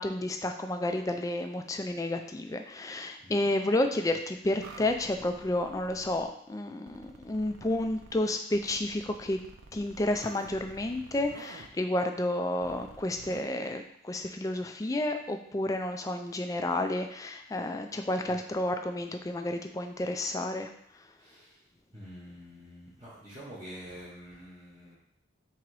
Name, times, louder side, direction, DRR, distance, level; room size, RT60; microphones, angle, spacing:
voice 1, 0.0-9.4 9.7-20.7, left 1 dB, 15° left, 5 dB, 0.3 m, -31 dB
sound 1, 4.6-6.3 6.9-8.2 8.5-11.7 12.6-13.4, right 3 dB, 85° right, 0.5 m, -50 dB
voice 2, 21.2-21.6 21.9-25.0, equal, 25° right, -7 dB, 0.9 m, -47 dB
3.8 x 2.9 x 4.6 m, 0.70 s
head